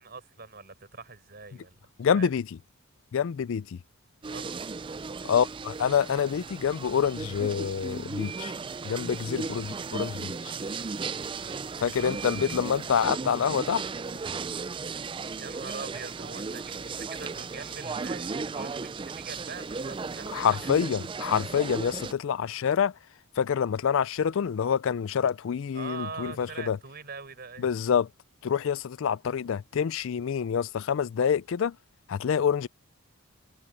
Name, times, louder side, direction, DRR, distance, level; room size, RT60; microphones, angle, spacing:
voice 1, 0.0-1.8 2.1-2.3 4.3-4.7 11.4-11.6 15.4-20.7 25.7-27.7, right 4 dB, 45° right, 5.3 m, -42 dB
voice 2, 2.0-2.6 3.1-3.8 5.2-8.6 8.8-10.5 11.8-13.8 20.3-23.0 23.4-26.8 27.6-28.1 28.4-31.8 32.1-32.7, left 7 dB, 60° left, 0.4 m, -27 dB
sound 1, 4.2-22.1, right 4 dB, 20° right, 0.3 m, -36 dB
head